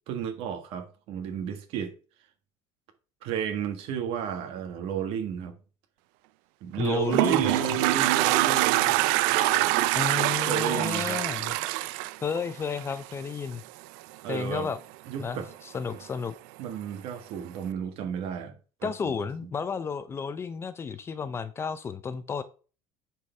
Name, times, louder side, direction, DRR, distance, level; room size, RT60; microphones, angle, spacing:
voice 1, 0.1-1.9 3.2-5.5 6.6-9.0 9.3-9.7 10.3-11.2 14.2-14.7 15.1-15.5 16.6-19.1, right 8 dB, 60° right, 1.6 m, -32 dB
voice 2, 6.8-7.6 9.9-11.5 12.2-13.6 14.3-14.8 15.2-15.4 15.7-16.3 18.8-22.4, left 6 dB, 25° left, 0.5 m, -32 dB
Toilet flush, 6.8-13.1, right 18 dB, 85° right, 0.4 m, -25 dB
9.6 x 4.6 x 3.3 m
cardioid pair, 140°, 11 cm